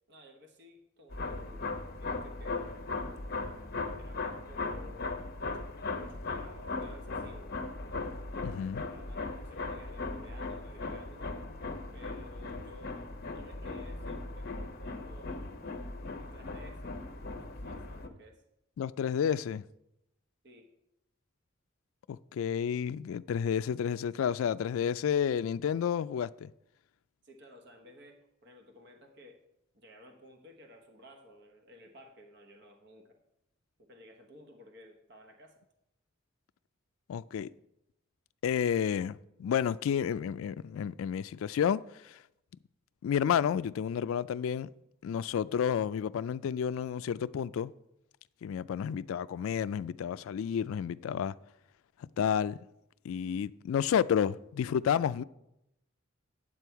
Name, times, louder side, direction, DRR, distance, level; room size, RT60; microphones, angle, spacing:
voice 1, 0.1-2.7 4.0-7.5 8.8-11.3 11.9-15.5 16.1-17.0 17.6-18.4 20.4-20.7 27.2-29.4 29.7-33.2 33.9-35.6, left 1 dB, 55° right, 1.2 m, -55 dB
sound 1, 1.1-18.1, left 3 dB, 50° left, 0.8 m, -38 dB
voice 2, 8.4-8.8 18.8-19.6 22.1-26.5 37.1-37.5 38.4-42.2 43.0-44.7 45.0-47.7 48.4-51.3 52.2-52.6 53.0-55.2, left 8 dB, 80° left, 0.3 m, -30 dB
9.9 x 7.7 x 4.6 m
head